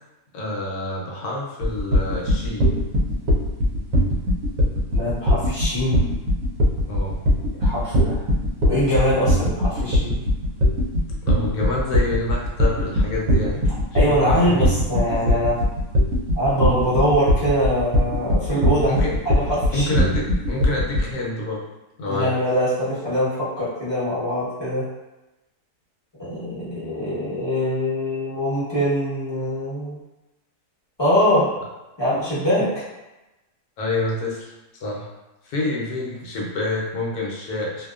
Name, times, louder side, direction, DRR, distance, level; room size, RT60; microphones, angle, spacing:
voice 1, 0.3-2.7 6.9-7.2 11.3-13.6 14.0-14.6 18.9-19.2 19.7-21.6 22.0-22.3 33.8-34.5 34.8-35.1 35.4-37.9, left 2 dB, 75° left, -4 dB, 1.1 m, -27 dB
sound 1, 1.6-21.1, equal, 70° right, 0.9 m, -19 dB
voice 2, 4.9-6.0 7.6-8.2 8.6-10.2 13.9-15.6 16.3-20.1 22.0-24.9 26.2-30.0 31.0-31.5 32.0-32.9, equal, 25° left, -12 dB, 0.6 m, -23 dB
2.7 x 2.2 x 2.3 m, 1.0 s
omnidirectional pair, 1.7 m